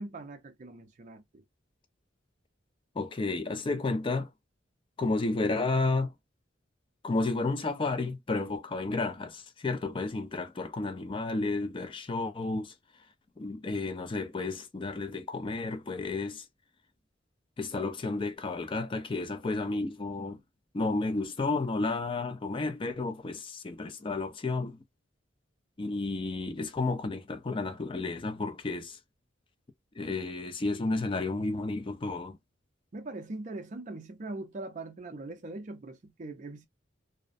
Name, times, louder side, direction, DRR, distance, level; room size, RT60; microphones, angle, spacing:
voice 1, 0.0-1.4 32.9-36.7, right 2 dB, 40° right, 0.5 m, -41 dB
voice 2, 3.0-4.3 5.0-6.1 7.0-12.7 13.4-16.4 17.6-20.4 20.7-24.8 25.8-29.0 29.9-32.4, left 3 dB, 25° left, 0.4 m, -32 dB
2.4 x 2.1 x 2.5 m
head